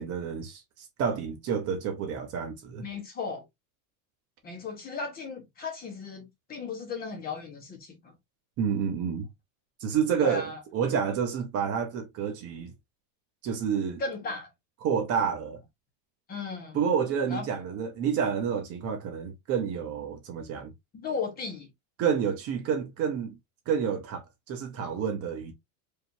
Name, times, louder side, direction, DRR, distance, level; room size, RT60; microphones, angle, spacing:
voice 1, 0.0-2.9 8.6-9.3 9.8-12.7 13.4-14.0 14.8-15.6 16.7-20.7 22.0-23.3 23.7-24.2 24.5-25.5, right 7 dB, 35° right, 0.9 m, -29 dB
voice 2, 2.8-3.4 4.4-8.1 10.2-10.6 14.0-14.5 16.3-16.8 17.3-17.5 20.9-21.7, left 4 dB, 20° left, 1.1 m, -36 dB
5.0 x 2.8 x 2.7 m
cardioid pair, 170°, 42 cm